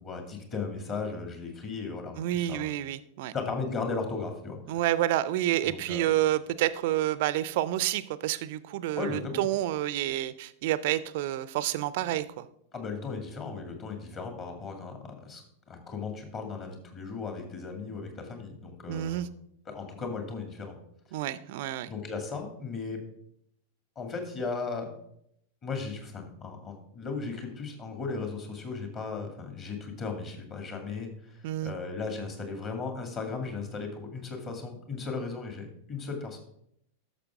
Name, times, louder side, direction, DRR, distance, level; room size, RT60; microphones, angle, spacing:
voice 1, 0.0-2.7 3.3-4.8 5.6-6.1 9.0-9.5 12.7-15.4 15.7-19.3 19.7-20.8 21.9-23.0 24.0-24.9 25.6-36.4, left 4 dB, 30° left, 4 dB, 2.1 m, -36 dB
voice 2, 2.2-3.3 4.7-12.4 18.9-19.3 21.1-21.9 31.4-31.7, right 13 dB, 50° right, 16 dB, 0.5 m, -29 dB
11.5 x 6.8 x 3.6 m, 0.73 s
figure-of-eight pair, 90°, 0 cm